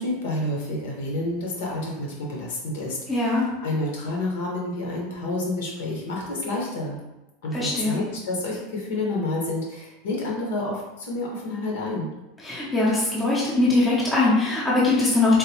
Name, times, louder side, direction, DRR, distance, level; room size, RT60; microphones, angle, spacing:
voice 1, 0.0-7.0 7.4-12.1, left 2 dB, 75° left, -3 dB, 1.2 m, -29 dB
voice 2, 3.1-3.4 7.5-8.0 12.4-15.4, left 2 dB, 10° left, -7 dB, 0.7 m, -21 dB
3.8 x 2.2 x 3.0 m, 1.0 s
supercardioid pair, 170°, 0 cm